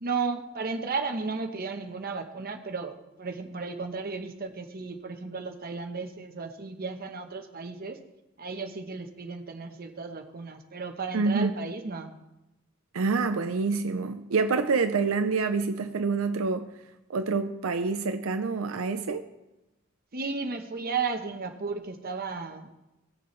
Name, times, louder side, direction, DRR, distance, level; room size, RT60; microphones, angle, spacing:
voice 1, 0.0-8.0 8.4-12.1 20.1-22.7, right 4 dB, 45° right, 5 dB, 1.0 m, -34 dB
voice 2, 11.1-11.5 12.9-16.7 17.1-19.2, right 4 dB, 80° right, 8 dB, 0.5 m, -27 dB
17.5 x 6.8 x 3.2 m, 0.96 s
head